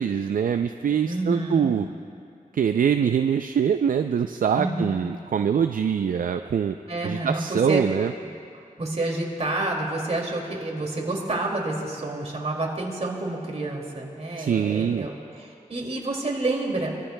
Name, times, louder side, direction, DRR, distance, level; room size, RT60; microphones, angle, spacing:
voice 1, 0.0-1.9 2.5-6.7 7.0-8.1 14.4-15.1, right 7 dB, 70° right, 8 dB, 0.4 m, -23 dB
voice 2, 1.0-1.7 4.5-4.9 6.9-7.9 8.8-16.9, right 2 dB, 45° right, -1 dB, 2.5 m, -29 dB
23.5 x 14.5 x 2.2 m, 2.4 s
wide cardioid pair, 70°, 15 cm